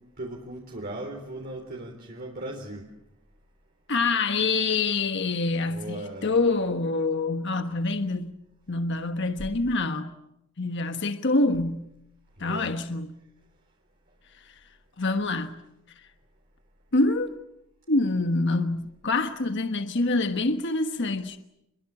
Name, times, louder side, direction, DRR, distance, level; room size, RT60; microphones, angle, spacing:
voice 1, 0.2-2.9 5.7-6.3 12.4-12.7, right 1 dB, 50° right, 3.9 m, -37 dB
voice 2, 3.9-8.3 8.7-10.1 10.6-11.8 12.4-13.2 14.4-14.5 15.0-15.6 16.9-17.4 17.9-21.4, left 3 dB, 60° left, 1.3 m, -26 dB
28.5 x 22.5 x 7.3 m
head